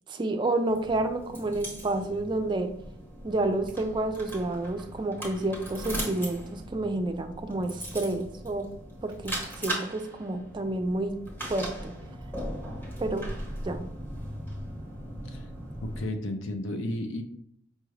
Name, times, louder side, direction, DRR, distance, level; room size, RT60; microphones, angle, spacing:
voice 1, 0.1-2.7 3.2-8.7 9.0-11.2 11.5-11.9 13.0-13.3 13.6-13.9, right 2 dB, 25° right, 5 dB, 0.3 m, -29 dB
sound 1, 0.7-16.1, right 1 dB, 10° left, 1.1 m, -39 dB
voice 2, 15.8-17.2, left 1 dB, 70° left, 7 dB, 0.6 m, -33 dB
5.4 x 2.4 x 3.2 m, 0.70 s
head